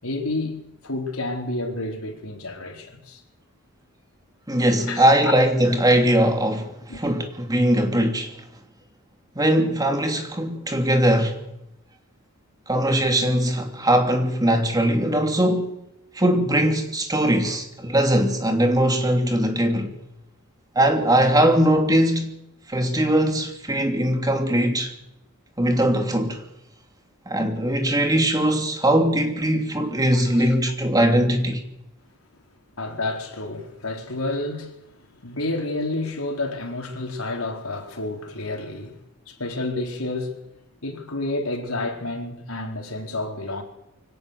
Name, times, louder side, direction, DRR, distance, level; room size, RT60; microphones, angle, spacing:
voice 1, 0.0-3.2 4.9-5.1 6.9-7.0 30.1-30.5 32.8-34.8 35.2-39.0 39.3-40.4 40.8-43.6, left 2 dB, 85° left, 4.4 m, -30 dB
voice 2, 4.5-8.4 9.3-11.4 12.7-15.7 16.1-20.0 20.7-22.3 22.7-24.9 25.6-26.4 27.3-31.6, right 1 dB, 20° right, 2.9 m, -20 dB
24.5 x 17.5 x 6.7 m
head